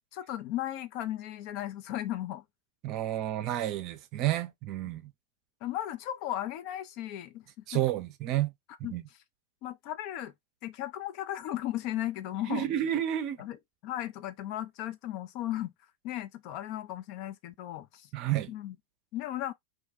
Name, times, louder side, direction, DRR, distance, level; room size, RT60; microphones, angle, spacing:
voice 1, 0.1-2.4 5.6-7.4 8.8-9.0 9.6-10.3 10.6-12.7 13.4-13.6 13.8-15.7 16.0-18.1 18.5-18.7 19.1-19.5, left 13 dB, 45° left, 0.4 m, -36 dB
voice 2, 2.8-5.1 7.7-8.5 8.8-9.0 12.5-13.4 18.1-18.5, right 12 dB, 40° right, 0.5 m, -30 dB
2.6 x 2.2 x 3.8 m
figure-of-eight pair, 90°, 0 cm